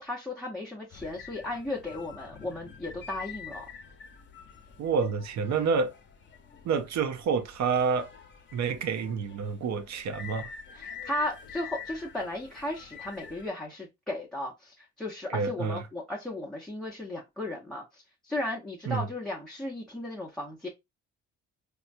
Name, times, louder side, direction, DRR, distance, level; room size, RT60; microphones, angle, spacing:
voice 1, 0.0-3.6 10.7-20.7, left 1 dB, ahead, 0.8 m, -35 dB
sound 1, 0.9-13.5, left 6 dB, 40° left, 0.8 m, -47 dB
voice 2, 4.8-5.9 6.6-8.1 8.5-10.5 15.3-15.8 18.9-19.1, right 5 dB, 65° right, 0.7 m, -28 dB
4.3 x 2.3 x 2.5 m
cardioid pair, 90°, 30 cm